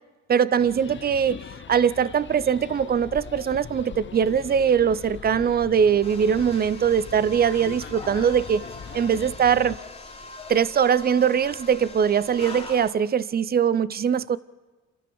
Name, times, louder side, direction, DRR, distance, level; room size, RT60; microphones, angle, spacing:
voice 1, 0.3-1.4 1.7-8.6 8.9-9.8 10.5-14.4, right 7 dB, 30° right, 0.6 m, -21 dB
sound 1, 0.6-9.8, left 8 dB, 40° left, 0.8 m, -41 dB
sound 2, 6.0-12.9, left 2 dB, 20° left, 2.9 m, -41 dB
27.5 x 14.0 x 7.1 m
cardioid pair, 90°, 30 cm